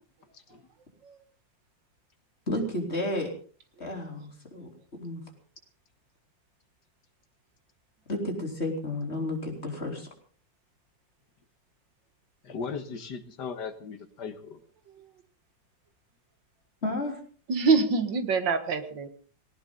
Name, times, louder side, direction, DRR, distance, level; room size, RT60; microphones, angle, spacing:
voice 1, 2.5-3.3 3.8-4.7 5.0-5.2 8.1-10.1 16.8-17.2, left 1 dB, 35° left, 2 dB, 4.0 m, -32 dB
voice 2, 12.4-14.6, left 5 dB, 65° left, 8 dB, 2.1 m, -37 dB
voice 3, 17.5-19.1, right 4 dB, 75° right, 9 dB, 2.3 m, -25 dB
18.5 x 18.5 x 3.9 m, 0.42 s
omnidirectional pair, 2.0 m